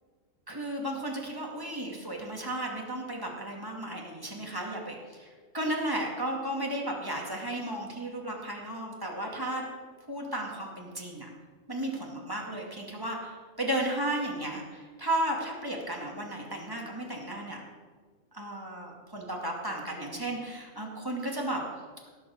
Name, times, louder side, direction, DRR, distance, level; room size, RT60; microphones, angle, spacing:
voice 1, 0.5-5.3 5.5-9.6 10.1-11.3 11.7-17.6 18.3-21.7, right 1 dB, 15° right, -1 dB, 2.3 m, -34 dB
17.5 x 7.1 x 6.6 m, 1.5 s
omnidirectional pair, 1.4 m